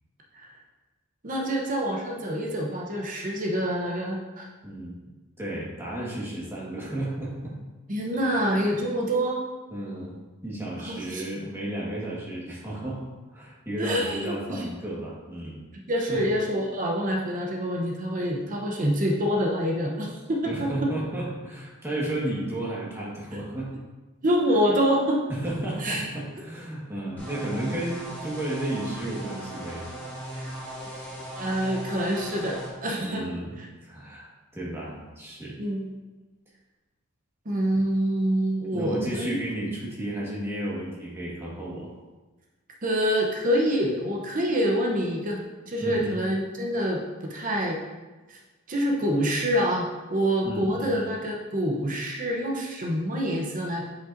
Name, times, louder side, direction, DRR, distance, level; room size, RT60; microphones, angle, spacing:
voice 1, 1.2-4.4 7.9-9.4 10.9-11.2 13.8-14.7 15.9-20.7 24.2-25.2 25.8-26.0 31.4-33.2 35.6-35.9 37.5-39.4 42.8-45.4 45.7-47.0 47.3-47.8 48.3-48.4 48.7-53.8, equal, 40° right, -1 dB, 0.8 m, -26 dB
voice 2, 4.6-4.9 5.4-7.6 8.3-8.8 9.7-13.0 13.3-15.6 16.1-16.2 20.4-23.7 25.3-29.8 33.0-33.5 33.8-35.5 38.7-41.9 45.8-46.2 50.4-50.9, right 1 dB, 10° right, -6 dB, 1.6 m, -33 dB
sound 1, 27.2-32.7, right 1 dB, 10° left, 1.7 m, -38 dB
7.9 x 5.2 x 2.6 m, 1.2 s
head